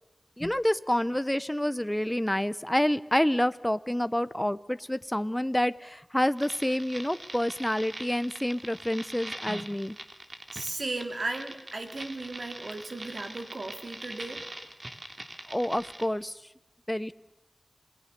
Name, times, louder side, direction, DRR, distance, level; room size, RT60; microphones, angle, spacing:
voice 1, 0.4-10.0 15.5-16.4 16.9-17.1, left 1 dB, 10° left, 14 dB, 0.9 m, -28 dB
sound 1, 6.4-16.0, right 1 dB, 45° right, 3.0 m, -42 dB
voice 2, 10.5-14.5, right 2 dB, 65° right, 6 dB, 3.2 m, -36 dB
27.5 x 20.0 x 6.8 m, 1.0 s
wide cardioid pair, 65°, 0 cm